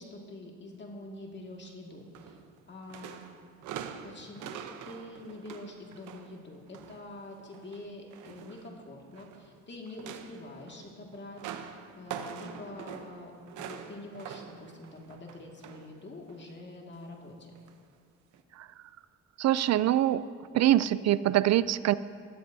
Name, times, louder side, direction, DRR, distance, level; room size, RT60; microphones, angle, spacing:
voice 1, 0.0-3.2 4.0-17.5, left 2 dB, 35° left, 0 dB, 2.1 m, -46 dB
sound 1, 2.1-2.6 2.9-7.0 7.4-9.5 9.9-16.0 16.3-16.5 17.6-17.7 18.3-18.4, right 8 dB, 85° right, 0.9 m, -45 dB
voice 2, 19.4-20.2 20.5-21.9, right 13 dB, 60° right, 16 dB, 0.4 m, -24 dB
20.5 x 13.5 x 2.7 m, 2.1 s
cardioid pair, 90°, 30 cm